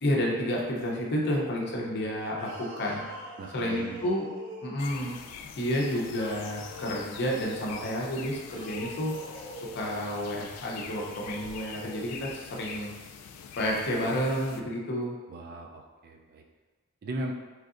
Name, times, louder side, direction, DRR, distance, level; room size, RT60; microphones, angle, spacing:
voice 1, 0.0-3.0 3.5-4.3 4.6-5.2 5.6-9.1 9.6-12.9 13.6-15.1, equal, 50° left, -2 dB, 0.6 m, -30 dB
sound 1, 2.3-5.0 6.1-7.6 8.4-9.9 10.8-12.3, equal, 60° right, 0.8 m, -44 dB
voice 2, 3.4-4.1 15.3-16.4 17.0-17.3, right 2 dB, 45° right, 3 dB, 0.3 m, -38 dB
sound 2, 4.8-14.6, left 7 dB, 85° left, 0.3 m, -44 dB
3.7 x 3.2 x 2.4 m, 1.3 s
head